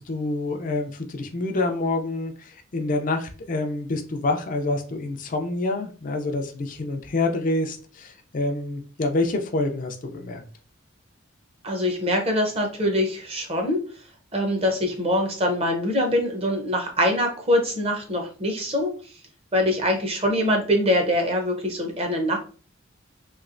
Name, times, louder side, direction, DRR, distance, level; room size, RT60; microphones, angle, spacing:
voice 1, 0.0-10.4, left 2 dB, 40° left, 4 dB, 0.4 m, -27 dB
voice 2, 11.6-13.8 14.3-18.9 19.5-22.4, left 1 dB, 30° right, 3 dB, 0.7 m, -23 dB
3.1 x 2.9 x 2.4 m, 0.38 s
head